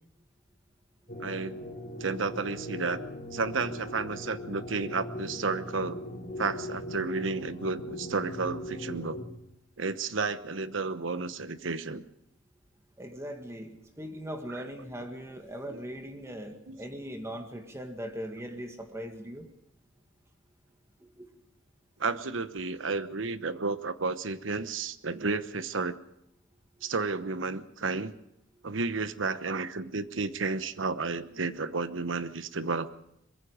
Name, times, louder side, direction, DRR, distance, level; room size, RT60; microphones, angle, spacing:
sound 1, 1.1-9.2, left 1 dB, 50° left, 4.5 m, -39 dB
voice 1, 1.2-1.6 2.0-3.0 3.3-6.0 6.4-9.2 9.8-12.0 14.5-14.6 15.7-15.8 16.7-16.8 22.0-25.9 26.8-28.1 28.6-32.9, right 4 dB, 85° right, 12 dB, 1.0 m, -32 dB
voice 2, 13.0-19.5 21.0-21.3, equal, 15° right, 5 dB, 1.9 m, -40 dB
24.0 x 22.0 x 5.1 m, 0.79 s
head